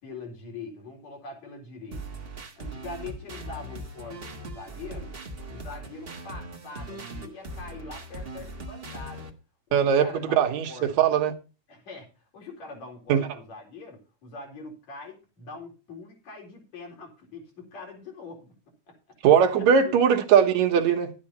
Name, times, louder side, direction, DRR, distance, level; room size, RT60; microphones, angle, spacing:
voice 1, 0.0-2.2 2.6-5.1 5.5-9.3 9.7-10.9 11.7-18.5 18.9-19.0 19.3-19.4 19.8-19.9, left 3 dB, 65° left, 5.5 m, -43 dB
sound 1, 1.9-9.3, right 1 dB, 40° right, 0.8 m, -39 dB
voice 2, 9.7-10.7 11.0-11.3 13.1-13.3 19.2-21.1, right 8 dB, 75° right, 2.6 m, -20 dB
12.0 x 9.9 x 4.2 m
omnidirectional pair, 3.4 m